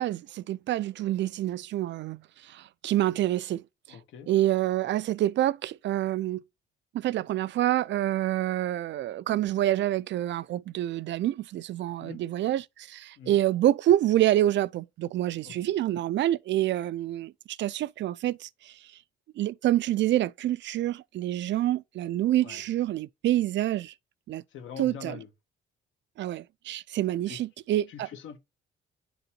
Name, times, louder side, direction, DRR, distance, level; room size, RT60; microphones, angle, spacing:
voice 1, 0.0-4.0 4.3-6.4 6.9-18.7 19.4-23.9 24.3-24.4 24.8-25.2 26.2-28.1, right 13 dB, 65° right, 0.4 m, -27 dB
voice 2, 3.9-4.3 12.0-12.2 13.2-13.4 15.4-15.7 22.4-22.6 24.5-25.3 27.3-27.4 27.9-28.4, left 7 dB, 80° left, 1.6 m, -43 dB
10.0 x 4.0 x 4.3 m
cardioid pair, 90°, 20 cm